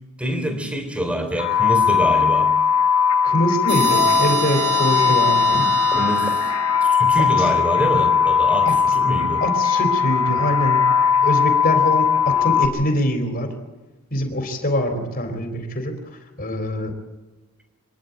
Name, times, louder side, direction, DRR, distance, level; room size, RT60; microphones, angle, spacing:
voice 1, 0.2-2.5 5.5-6.5 6.8-9.4, right 1 dB, 5° right, 6 dB, 3.2 m, -25 dB
sound 1, 1.4-12.7, left 7 dB, 90° left, 4.1 m, -19 dB
voice 2, 3.2-5.6 7.2-7.5 8.7-8.8 9.4-10.8 11.2-13.5 14.1-15.9 16.4-16.9, equal, 40° left, 5 dB, 3.9 m, -23 dB
sound 2, 3.7-7.3, right 6 dB, 50° right, 2.2 m, -28 dB
26.5 x 11.0 x 9.5 m, 1.2 s
head